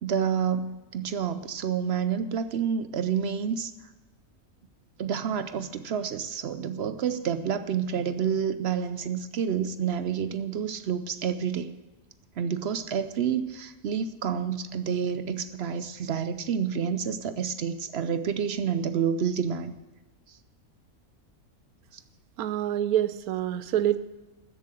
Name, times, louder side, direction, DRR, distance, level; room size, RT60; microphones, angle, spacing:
voice 1, 0.0-3.7 5.0-11.7 12.4-19.7, right 7 dB, 60° right, 11 dB, 0.7 m, -29 dB
voice 2, 22.4-24.0, right 11 dB, 90° right, 14 dB, 1.1 m, -26 dB
13.0 x 7.6 x 7.5 m, 1.2 s
omnidirectional pair, 1.5 m